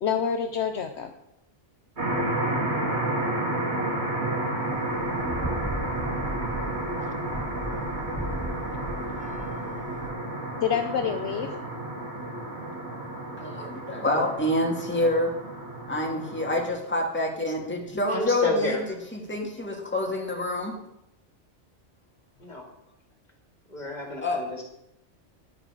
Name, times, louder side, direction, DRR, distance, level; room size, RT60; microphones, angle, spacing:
voice 1, 0.0-1.1 10.6-11.5, left 7 dB, 70° left, 6 dB, 1.0 m, -27 dB
sound 1, 2.0-16.7, right 1 dB, 60° right, 2.6 m, -31 dB
sound 2, 4.7-10.1, right 1 dB, 10° right, 0.7 m, -37 dB
voice 2, 13.4-15.3 15.9-18.8 19.1-20.7 24.2-24.4, left 1 dB, 10° left, 0 dB, 1.8 m, -27 dB
voice 3, 18.1-18.8 22.4-22.6 23.7-24.6, left 2 dB, 35° left, 1 dB, 2.3 m, -30 dB
10.5 x 8.9 x 4.8 m, 0.83 s
omnidirectional pair, 1.2 m